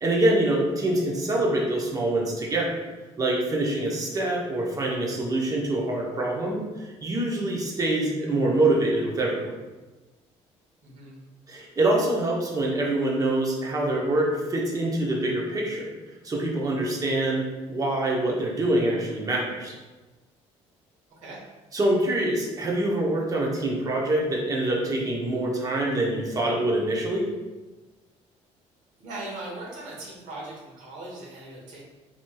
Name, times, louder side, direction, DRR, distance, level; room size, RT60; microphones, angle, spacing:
voice 1, 0.0-2.8 3.2-9.5 11.5-15.9 16.2-19.7 21.7-27.3, right 1 dB, 30° right, -1 dB, 0.8 m, -25 dB
voice 2, 10.8-11.2 21.1-21.5 29.0-31.8, right 2 dB, 80° right, -4 dB, 1.2 m, -39 dB
4.3 x 3.0 x 2.3 m, 1.2 s
cardioid pair, 105°, 12 cm